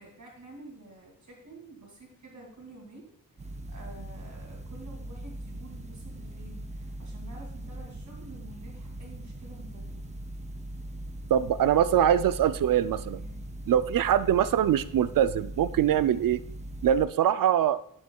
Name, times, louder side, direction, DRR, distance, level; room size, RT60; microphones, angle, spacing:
voice 1, 0.0-3.1 3.4-10.0 13.1-13.4, right 2 dB, 55° right, -1 dB, 2.6 m, -49 dB
sound 1, 3.4-17.1, right 1 dB, 20° right, 0.6 m, -40 dB
voice 2, 11.3-13.2 13.7-16.4 16.8-17.8, right 10 dB, 75° right, 15 dB, 0.5 m, -23 dB
11.0 x 7.2 x 2.3 m, 0.70 s
cardioid pair, 100°, 34 cm